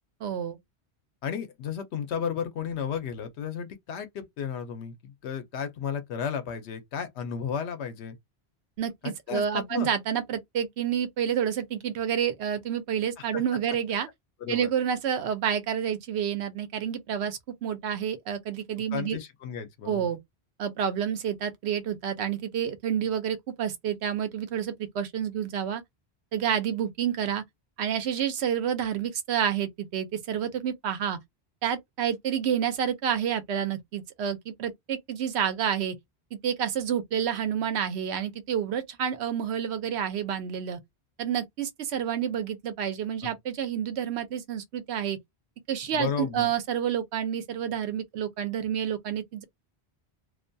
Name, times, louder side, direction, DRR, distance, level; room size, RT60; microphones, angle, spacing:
voice 1, 0.2-0.6 8.8-14.1 14.5-19.2 19.9-20.2 20.6-25.8 26.3-27.4 27.8-31.2 31.6-36.0 36.3-40.8 41.2-45.2 45.7-49.4, right 8 dB, 80° right, 0.9 m, -29 dB
voice 2, 1.2-8.2 9.0-9.9 13.2-13.4 14.4-14.7 18.9-20.1 43.2-43.4 45.9-46.5, left 7 dB, 80° left, 0.9 m, -33 dB
2.4 x 2.2 x 2.6 m
omnidirectional pair, 1.1 m